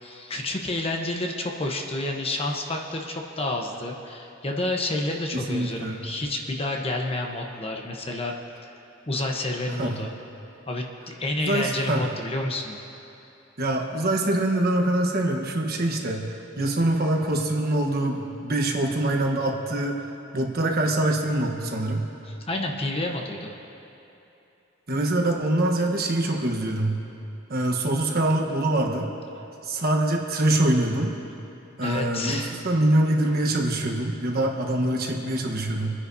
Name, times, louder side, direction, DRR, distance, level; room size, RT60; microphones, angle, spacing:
voice 1, 0.0-8.3 8.6-8.7 9.1-10.1 10.7-12.8 22.2-23.5 31.8-32.6, left 2 dB, 30° left, 1 dB, 1.0 m, -29 dB
voice 2, 5.3-6.0 9.8-10.0 11.4-12.0 13.6-22.0 24.9-27.0 27.5-29.1 29.6-31.1 31.8-36.0, right 1 dB, 50° right, 1 dB, 1.3 m, -24 dB
26.0 x 10.0 x 2.8 m, 2.9 s
head